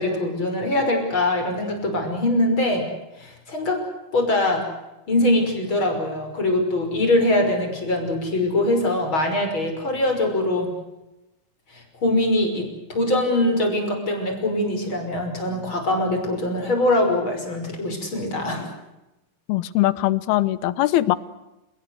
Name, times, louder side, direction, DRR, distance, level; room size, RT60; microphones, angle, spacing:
voice 1, 0.0-2.9 3.2-3.8 4.1-4.7 5.1-10.7 11.7-18.7, left 1 dB, 30° left, 3 dB, 6.4 m, -23 dB
voice 2, 19.5-21.2, left 15 dB, 85° left, 18 dB, 2.9 m, -21 dB
29.5 x 19.0 x 8.0 m, 0.98 s
omnidirectional pair, 4.3 m